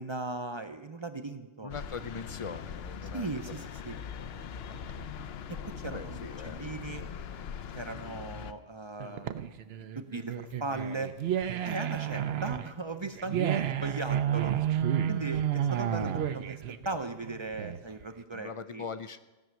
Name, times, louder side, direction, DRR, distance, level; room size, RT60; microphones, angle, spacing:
voice 1, 0.0-1.7 3.1-4.0 5.6-7.0 7.7-9.5 10.0-11.1 11.6-14.5 15.1-18.9, right 3 dB, 30° right, 8 dB, 0.6 m, -38 dB
voice 2, 1.6-3.3 5.8-6.6 18.3-19.2, left 5 dB, 50° left, 13 dB, 0.4 m, -41 dB
sound 1, 1.7-8.5, left 7 dB, 70° left, 0.9 m, -41 dB
sound 2, 9.0-18.0, right 10 dB, 70° right, 0.9 m, -31 dB
16.0 x 6.2 x 9.0 m, 1.2 s
omnidirectional pair, 1.1 m